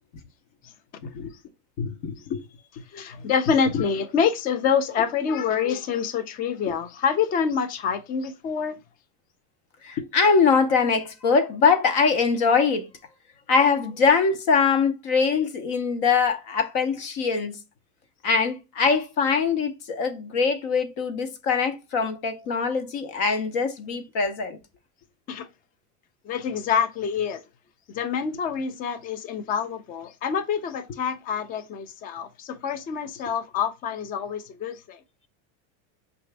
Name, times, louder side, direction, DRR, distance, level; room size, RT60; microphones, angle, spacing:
voice 1, 1.0-1.3 1.8-2.4 3.7-3.8 6.7-6.8 9.8-12.9 13.5-17.6 18.2-24.6, left 5 dB, 55° left, 0.8 m, -23 dB
voice 2, 2.9-8.8 25.3-25.5 26.2-27.4 27.9-35.0, left 7 dB, 25° left, 0.3 m, -26 dB
5.6 x 2.6 x 3.2 m
supercardioid pair, 140°, 41 cm